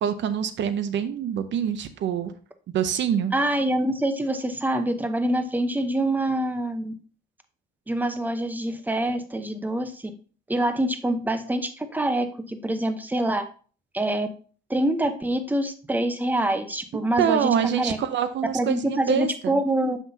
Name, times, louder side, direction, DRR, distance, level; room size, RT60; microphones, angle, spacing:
voice 1, 0.0-2.3 2.7-3.3 17.2-19.6, right 9 dB, 65° right, 11 dB, 0.6 m, -25 dB
voice 2, 3.3-6.9 7.9-10.1 10.5-13.4 13.9-14.3 14.7-17.5 17.8-18.0 18.5-20.0, right 1 dB, 10° right, 8 dB, 0.8 m, -25 dB
7.1 x 5.9 x 2.7 m, 0.40 s
cardioid pair, 90°, 20 cm